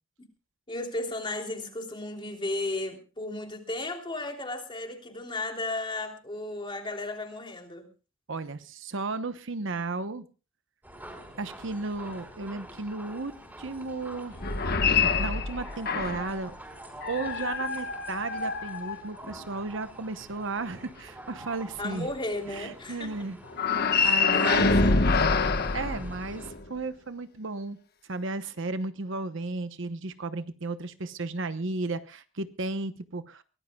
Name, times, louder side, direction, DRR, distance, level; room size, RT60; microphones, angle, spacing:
voice 1, 0.7-7.9 21.8-23.3 23.9-25.2, left 2 dB, 25° left, 2 dB, 3.2 m, -35 dB
voice 2, 8.3-10.2 11.4-14.4 14.8-16.5 17.1-22.1 22.5-23.4 23.6-24.7 25.7-27.8 28.1-33.4, right 3 dB, 65° right, 11 dB, 1.0 m, -34 dB
sound 1, 10.8-26.5, right 1 dB, 10° right, 4.9 m, -47 dB
sound 2, 14.3-16.4 17.0-19.4 23.5-26.7, left 4 dB, 50° left, 1.2 m, -26 dB
23.5 x 17.5 x 2.3 m, 0.34 s
head